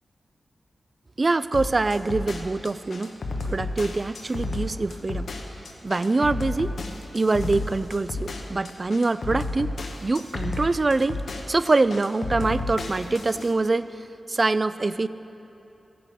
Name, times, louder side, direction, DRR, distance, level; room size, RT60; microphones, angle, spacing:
voice 1, 1.2-3.1 3.5-5.3 5.8-6.7 7.1-9.7 10.0-11.2 11.5-13.9 14.3-15.1, right 3 dB, 35° right, 15 dB, 0.3 m, -24 dB
sound 1, 1.5-13.5, left 2 dB, 70° left, 1.1 m, -32 dB
15.5 x 9.2 x 5.7 m, 2.9 s
wide cardioid pair, 95°, 0 cm